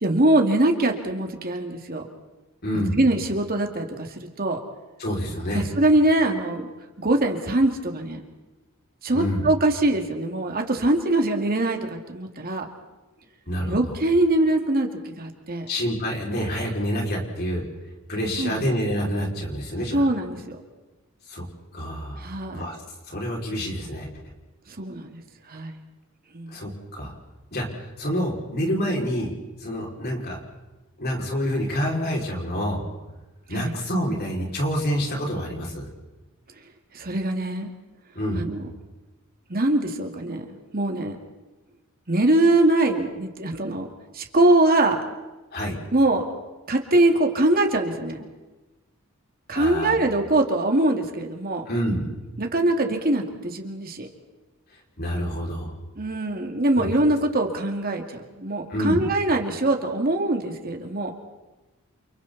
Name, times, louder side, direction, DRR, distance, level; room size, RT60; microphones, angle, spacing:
voice 1, 0.0-2.0 3.0-4.6 5.5-6.7 7.0-8.2 9.0-12.7 13.7-15.7 18.4-18.6 19.9-20.6 22.2-22.6 24.7-25.2 25.5-25.8 26.3-26.6 33.5-33.8 36.9-37.7 38.3-38.6 39.5-40.5 40.7-41.2 42.1-43.9 44.1-45.0 45.9-46.3 46.7-48.3 49.5-51.7 52.4-54.1 56.0-61.1, right 1 dB, 45° right, 3 dB, 2.4 m, -23 dB
voice 2, 2.6-3.0 5.0-5.7 9.1-9.5 13.5-13.9 15.7-17.6 18.1-20.0 21.3-21.4 21.7-22.8 23.1-24.1 26.5-27.1 27.5-29.3 29.6-30.4 31.0-33.0 33.5-35.9 38.1-38.5 45.5-45.8 49.5-50.0 51.7-52.0 55.0-55.7 56.7-56.9 58.7-59.0, equal, 50° left, -1 dB, 5.8 m, -27 dB
29.5 x 29.5 x 4.2 m, 1.1 s
head